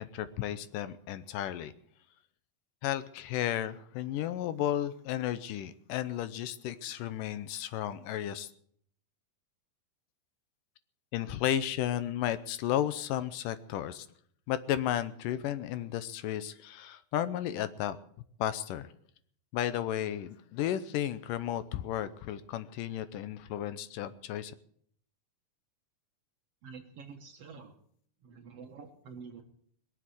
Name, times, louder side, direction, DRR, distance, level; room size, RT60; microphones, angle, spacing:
voice 1, 0.0-1.7 2.8-8.5 11.1-14.1 14.5-18.0 18.4-18.9 19.5-24.5, left 11 dB, 75° left, 13 dB, 2.3 m, -33 dB
voice 2, 26.6-27.7 28.2-29.4, right 5 dB, 55° right, 4 dB, 2.0 m, -48 dB
22.0 x 7.7 x 8.1 m, 0.62 s
omnidirectional pair, 4.0 m